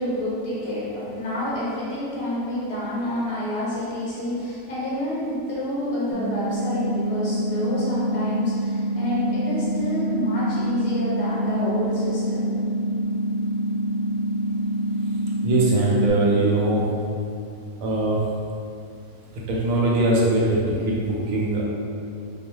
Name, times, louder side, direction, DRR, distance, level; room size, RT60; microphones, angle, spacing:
voice 1, 0.0-12.5, left 1 dB, 40° left, -10 dB, 0.5 m, -28 dB
sound 1, 6.1-16.1, equal, 5° left, 1.0 m, -26 dB
voice 2, 15.4-16.9 17.8-18.2 19.5-21.6, right 2 dB, 70° right, -4 dB, 0.9 m, -21 dB
2.3 x 2.2 x 2.9 m, 2.5 s
omnidirectional pair, 1.6 m